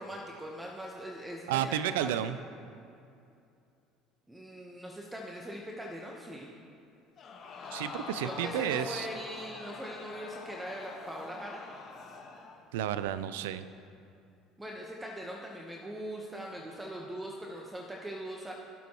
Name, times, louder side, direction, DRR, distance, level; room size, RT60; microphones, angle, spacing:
voice 1, 0.0-2.3 4.3-6.5 8.2-11.6 14.6-18.5, equal, 10° right, -1 dB, 1.2 m, -41 dB
voice 2, 1.5-2.4 7.7-9.1 12.7-13.7, right 11 dB, 80° right, 13 dB, 0.4 m, -31 dB
Crowd, 7.2-12.6 13.0-13.1, left 4 dB, 50° left, 1.5 m, -44 dB
16.0 x 7.0 x 3.1 m, 2.6 s
hypercardioid pair, 75°, 0 cm